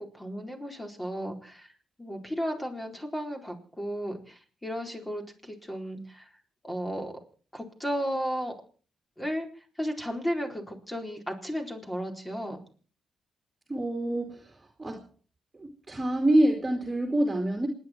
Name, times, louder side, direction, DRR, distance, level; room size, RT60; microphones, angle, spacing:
voice 1, 0.0-1.7 2.0-6.3 6.6-7.1 7.5-8.5 9.2-12.6, equal, 15° left, 3 dB, 4.3 m, -34 dB
voice 2, 13.7-15.0 15.6-17.7, right 1 dB, 25° right, 3 dB, 2.6 m, -26 dB
27.5 x 10.0 x 4.5 m, 0.42 s
cardioid pair, 65°, 0 cm